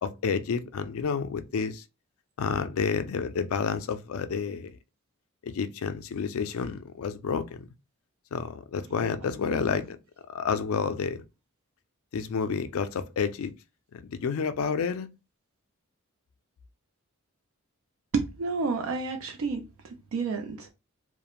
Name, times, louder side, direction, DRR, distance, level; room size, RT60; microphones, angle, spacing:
voice 1, 0.0-1.8 2.4-4.8 5.4-7.7 8.3-10.0 10.3-11.2 12.1-13.5 13.9-15.1, left 6 dB, 75° left, 0.4 m, -30 dB
voice 2, 18.1-19.7 20.1-20.7, right 4 dB, 70° right, 0.4 m, -29 dB
2.4 x 2.1 x 2.9 m
head